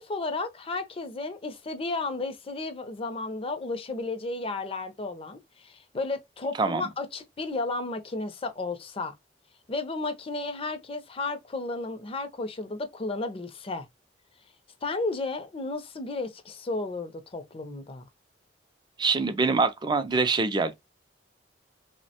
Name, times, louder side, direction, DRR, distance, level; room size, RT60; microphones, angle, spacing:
voice 1, 0.0-9.1 9.7-13.9 14.8-18.1, left 3 dB, 30° left, 0.5 m, -33 dB
voice 2, 6.6-6.9 19.0-20.7, right 4 dB, 25° right, 0.4 m, -24 dB
3.1 x 2.1 x 2.7 m
head